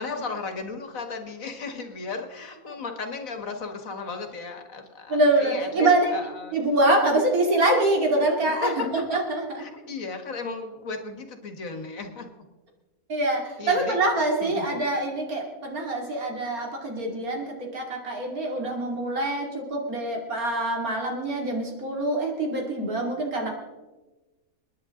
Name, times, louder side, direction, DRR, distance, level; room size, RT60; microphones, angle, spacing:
voice 1, 0.0-6.6 8.6-9.2 9.6-12.3 13.6-14.0 14.4-14.7, left 4 dB, 65° left, 6 dB, 1.9 m, -35 dB
voice 2, 5.1-6.1 6.5-8.7 9.1-9.6 13.1-23.5, right 2 dB, 80° right, 0 dB, 3.2 m, -25 dB
28.5 x 10.0 x 3.8 m, 1.2 s
omnidirectional pair, 1.5 m